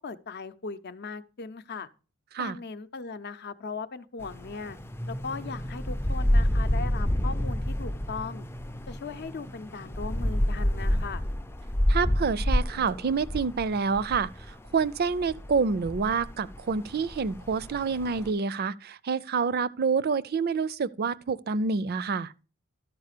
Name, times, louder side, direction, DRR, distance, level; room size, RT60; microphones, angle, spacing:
voice 1, 0.0-1.9 2.4-4.8 5.1-8.5 8.9-11.2, left 4 dB, 55° left, 0.7 m, -38 dB
sound 1, 4.2-18.3, equal, 10° left, 0.4 m, -29 dB
voice 2, 11.9-22.3, right 5 dB, 50° right, 0.5 m, -28 dB
12.5 x 4.8 x 6.7 m
head